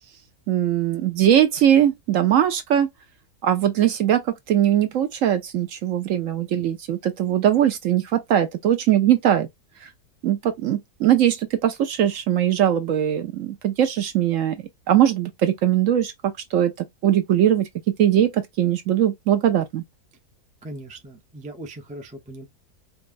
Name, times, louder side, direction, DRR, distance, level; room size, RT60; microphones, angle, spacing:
voice 1, 0.5-2.9 3.4-9.5 10.2-14.6 14.9-16.7 17.0-17.7 18.0-19.8, right 10 dB, 65° right, 0.9 m, -20 dB
voice 2, 20.6-22.4, right 1 dB, 10° right, 0.3 m, -39 dB
5.3 x 2.4 x 2.5 m
omnidirectional pair, 1.7 m